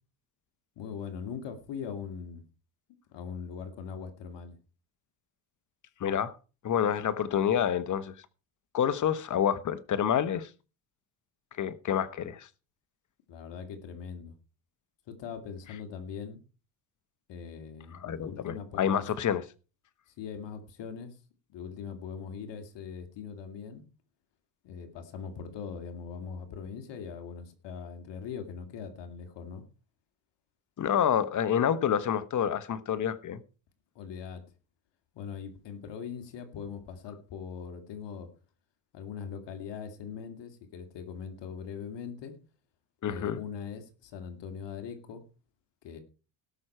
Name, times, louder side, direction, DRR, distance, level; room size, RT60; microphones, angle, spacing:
voice 1, 0.8-2.4 3.1-4.6 13.3-14.3 15.1-16.4 17.3-19.1 20.2-21.2 21.5-23.8 24.6-29.6 34.0-34.4 35.1-38.3 38.9-42.3 43.0-45.2 45.8-46.0, left 6 dB, 65° left, 2.4 m, -41 dB
voice 2, 6.0-6.3 6.6-8.1 8.7-10.5 11.6-12.5 18.0-19.4 30.8-33.4 43.0-43.4, left 9 dB, 40° left, 1.1 m, -28 dB
18.0 x 6.2 x 4.4 m
supercardioid pair, 90°, 46 cm